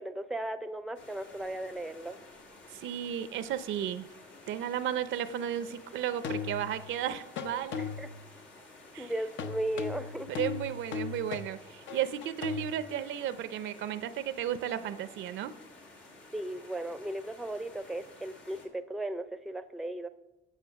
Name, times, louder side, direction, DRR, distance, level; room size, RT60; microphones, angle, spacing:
voice 1, 0.0-2.2 8.0-8.1 9.0-10.3 16.3-20.1, right 1 dB, ahead, 11 dB, 0.5 m, -36 dB
sound 1, 0.9-18.7, left 2 dB, 90° left, 2.3 m, -53 dB
voice 2, 2.7-4.1 4.5-7.8 8.9-9.1 10.3-15.5, right 10 dB, 75° right, 13 dB, 0.6 m, -34 dB
sound 2, 4.5-4.6 6.2-7.0 7.4-8.3 9.4-12.7, left 6 dB, 70° left, 0.6 m, -37 dB
8.2 x 6.2 x 5.8 m, 1.0 s
cardioid pair, 90°, 20 cm